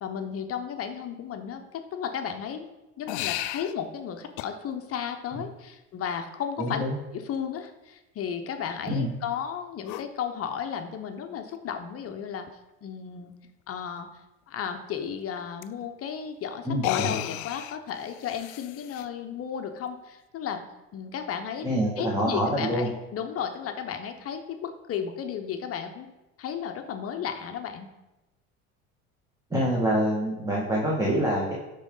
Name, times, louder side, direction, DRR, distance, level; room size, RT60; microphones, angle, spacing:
voice 1, 0.0-2.7 3.0-6.8 7.1-12.5 12.8-13.3 13.7-14.1 14.5-20.6 20.9-21.7 22.0-26.1 26.4-27.9, left 8 dB, 45° left, 6 dB, 0.8 m, -34 dB
sound 1, 3.1-3.7 4.4-4.5 6.6-6.7 9.8-10.1 11.5-11.6 12.0-12.1 12.5-12.6 15.6-15.7 16.7-19.1, left 15 dB, 60° left, 0.4 m, -33 dB
voice 2, 6.6-7.0 8.9-9.1 16.7-17.2 21.6-22.9 29.5-31.5, equal, 10° right, -4 dB, 1.7 m, -26 dB
9.5 x 3.7 x 3.8 m, 0.99 s
supercardioid pair, 85°, 33 cm